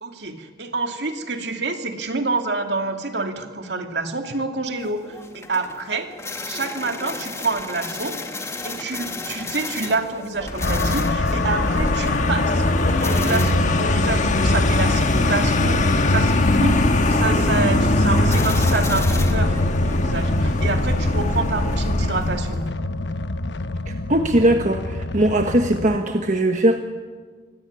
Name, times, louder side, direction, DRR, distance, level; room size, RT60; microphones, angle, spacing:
voice 1, 0.0-6.1 6.4-12.7 13.0-19.6 19.8-22.6, right 3 dB, 75° right, 5 dB, 2.6 m, -27 dB
sound 1, 4.8-22.7, left 3 dB, 15° left, 1.8 m, -36 dB
Vehicle, 10.4-22.6, left 1 dB, 45° left, 1.7 m, -23 dB
sound 2, 10.6-26.0, left 2 dB, 85° left, 1.0 m, -24 dB
voice 2, 23.9-26.8, right 1 dB, 45° right, 5 dB, 1.3 m, -20 dB
24.0 x 18.0 x 9.9 m, 1.5 s
head